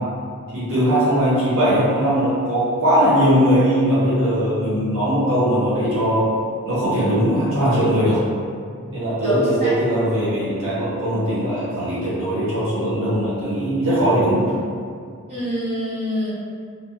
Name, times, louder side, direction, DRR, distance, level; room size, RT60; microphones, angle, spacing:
voice 1, 0.5-6.3 6.6-8.2 8.9-14.4, equal, 65° right, -10 dB, 0.8 m, -20 dB
voice 2, 9.2-9.7 15.3-16.3, equal, 30° right, -13 dB, 0.8 m, -25 dB
2.1 x 2.0 x 2.9 m, 2.2 s
head